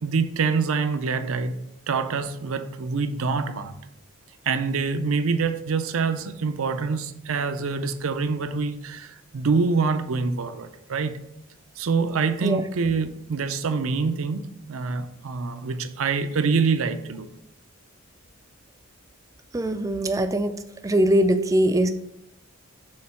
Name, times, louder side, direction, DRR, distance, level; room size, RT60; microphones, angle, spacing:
voice 1, 0.0-3.7 4.5-11.2 11.8-17.3, right 4 dB, 70° right, 0.5 m, -25 dB
voice 2, 19.5-20.6 20.8-21.9, right 1 dB, 15° right, 0.3 m, -21 dB
6.4 x 3.8 x 4.3 m
head